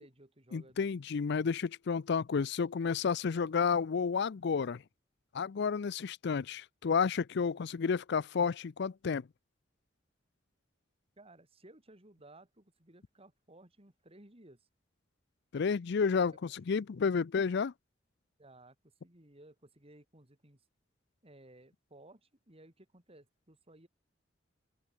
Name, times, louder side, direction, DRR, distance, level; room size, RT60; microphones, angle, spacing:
voice 1, 0.0-0.9 7.5-7.6 11.2-14.7 16.7-16.8 18.4-18.8 19.0-20.6 21.2-23.9, right 1 dB, 30° right, 3.9 m, -58 dB
voice 2, 0.5-4.8 5.3-9.2 15.5-17.7, left 5 dB, 60° left, 0.5 m, -31 dB
open air
head